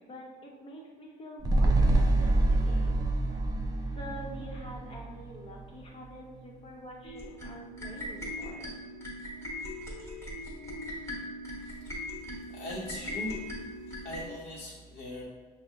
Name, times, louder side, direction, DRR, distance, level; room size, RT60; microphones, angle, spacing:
voice 1, 0.0-3.0 4.0-8.7, equal, 35° left, -1 dB, 0.9 m, -46 dB
sound 1, 1.4-5.9 6.3-6.4, right 2 dB, 25° right, 0.4 m, -27 dB
sound 2, 7.0-14.3, left 1 dB, 15° left, 1.4 m, -39 dB
voice 2, 11.5-11.9 12.5-13.4 13.9-15.2, left 1 dB, 70° left, -5 dB, 0.8 m, -40 dB
5.5 x 2.1 x 3.5 m, 1.4 s
cardioid pair, 110°, 17 cm